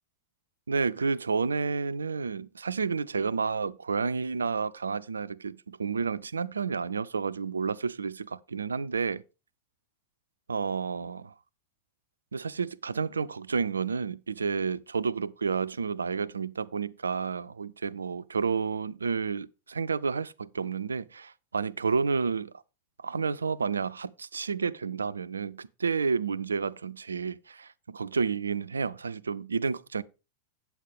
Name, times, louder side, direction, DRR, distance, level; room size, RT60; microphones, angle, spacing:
voice 1, 0.7-9.2 10.5-11.3 12.3-22.5 23.0-30.0, right 5 dB, 75° right, 0.4 m, -30 dB
8.6 x 8.1 x 3.5 m
figure-of-eight pair, 90°, 0 cm